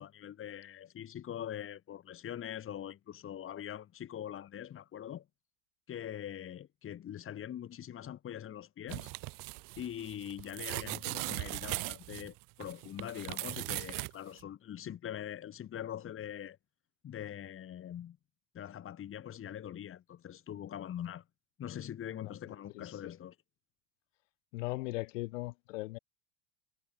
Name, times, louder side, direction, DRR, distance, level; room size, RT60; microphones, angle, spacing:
voice 1, 0.0-5.2 5.9-9.1 9.8-16.6 17.0-18.2 18.5-21.2 21.6-23.3, left 10 dB, 35° left, 4.8 m, -43 dB
sound 1, 8.9-14.1 14.4-14.5, right 26 dB, 55° right, 7.1 m, -39 dB
voice 2, 22.2-22.9 24.5-26.0, left 21 dB, 75° left, 6.1 m, -39 dB
supercardioid pair, 120°, 38 cm